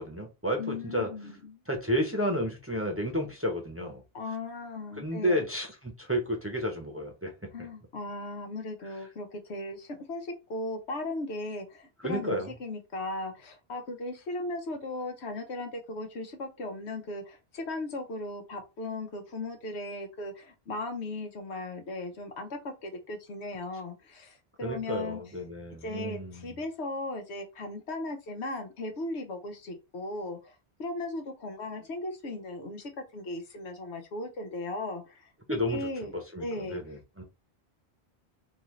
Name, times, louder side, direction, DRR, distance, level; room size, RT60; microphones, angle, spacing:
voice 1, 0.0-1.1 1.7-4.0 5.0-7.3 12.0-12.5 24.6-26.6 35.5-35.9 36.1-37.2, equal, 15° right, 0.8 m, -31 dB
voice 2, 0.6-1.6 4.1-5.4 7.5-25.2 25.8-35.3 35.7-36.1 36.4-36.8, left 2 dB, 85° left, 1.1 m, -37 dB
3.7 x 2.5 x 3.1 m
omnidirectional pair, 1.1 m